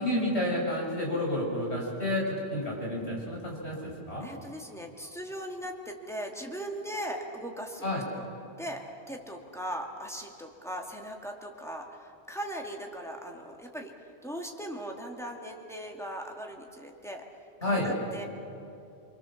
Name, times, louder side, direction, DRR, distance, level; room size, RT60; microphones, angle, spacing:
voice 1, 0.0-4.3 7.8-8.0 17.6-17.9, left 1 dB, 70° left, -2 dB, 6.3 m, -30 dB
voice 2, 4.2-8.2 8.6-13.9 14.2-17.2 17.6-18.3, equal, ahead, 0 dB, 2.3 m, -39 dB
26.5 x 24.5 x 7.2 m, 2.7 s
omnidirectional pair, 1.2 m